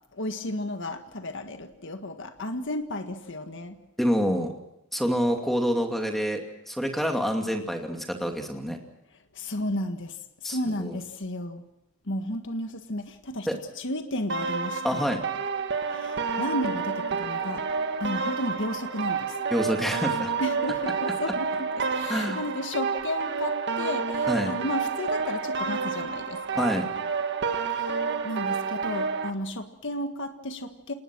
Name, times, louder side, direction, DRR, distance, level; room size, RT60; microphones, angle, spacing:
voice 1, 0.1-3.8 9.3-11.6 12.1-13.5 13.8-15.1 15.9-17.7 18.0-19.4 20.4-26.6 27.7-30.9, left 1 dB, 60° left, 7 dB, 1.7 m, -33 dB
voice 2, 4.0-4.5 4.9-8.8 10.4-11.0 13.5-13.6 14.8-15.2 19.5-20.3 22.1-22.4 24.3-24.5 26.6-26.9, equal, ahead, 3 dB, 2.5 m, -27 dB
sound 1, 14.3-29.3, right 5 dB, 55° right, 1.6 m, -29 dB
28.5 x 19.5 x 6.2 m, 0.87 s
head